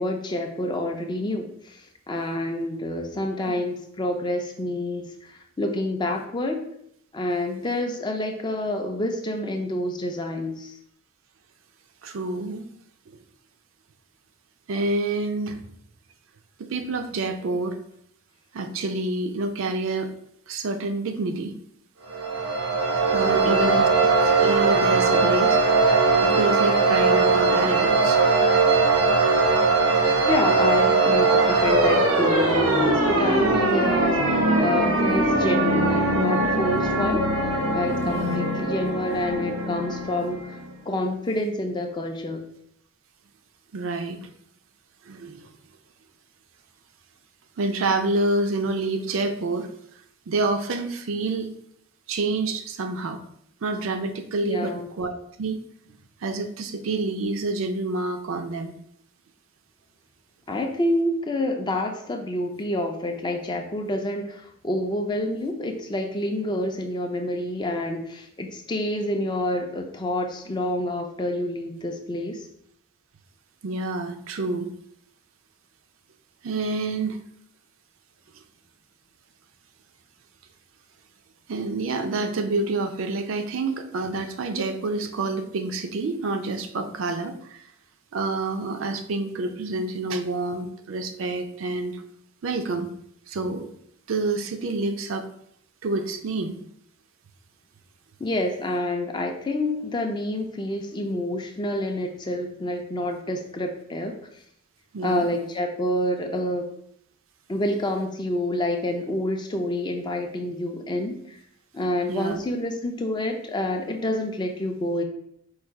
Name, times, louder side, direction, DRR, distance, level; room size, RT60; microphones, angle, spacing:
voice 1, 0.0-6.6 7.1-10.8 23.2-23.8 30.3-37.2 37.7-40.6 40.9-42.4 54.4-54.9 60.5-72.5 98.2-104.2 105.0-106.7 107.5-111.4 111.7-115.0, left 1 dB, 20° left, 3 dB, 0.4 m, -28 dB
voice 2, 12.0-12.7 13.1-13.2 14.7-15.6 16.6-17.8 18.5-20.1 20.5-21.5 23.1-23.9 24.4-25.6 26.2-28.2 38.0-38.4 43.7-44.3 45.1-45.4 47.6-49.7 50.3-51.5 52.1-53.2 53.6-55.1 55.4-55.6 56.2-58.7 73.6-74.7 76.4-77.2 81.5-87.6 88.1-92.0 92.4-92.9 93.3-93.7 94.1-95.3 95.8-96.6 104.9-105.3 112.1-112.4, right 2 dB, 65° right, 7 dB, 0.4 m, -28 dB
Alien Technology Power Down, 22.1-40.7, right 3 dB, 90° right, 0.8 m, -21 dB
4.7 x 2.3 x 4.5 m, 0.71 s
head